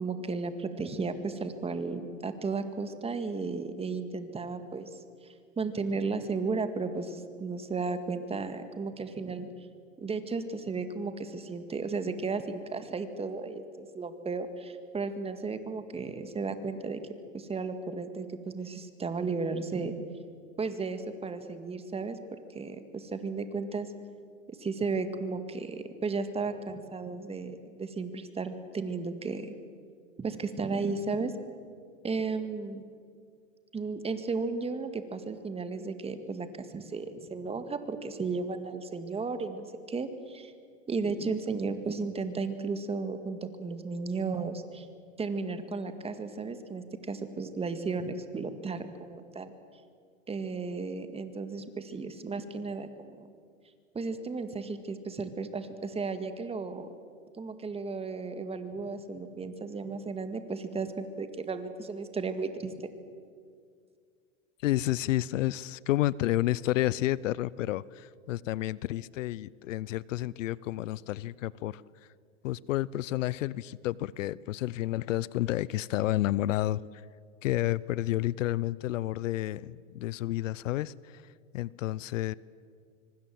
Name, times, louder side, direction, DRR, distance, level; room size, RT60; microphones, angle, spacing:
voice 1, 0.0-5.0 5.6-9.5 10.0-17.0 17.3-20.0 20.6-22.2 22.5-23.9 24.5-29.5 30.2-31.3 32.0-32.8 33.7-40.5 40.9-44.9 45.2-49.5 50.3-53.1 53.9-56.9 57.3-62.9, right 4 dB, 15° right, 9 dB, 1.9 m, -34 dB
voice 2, 64.6-71.8 72.4-77.0 77.4-81.2 81.5-82.3, left 15 dB, 70° left, 22 dB, 0.7 m, -30 dB
25.0 x 24.0 x 7.7 m, 2.1 s
hypercardioid pair, 120°, 39 cm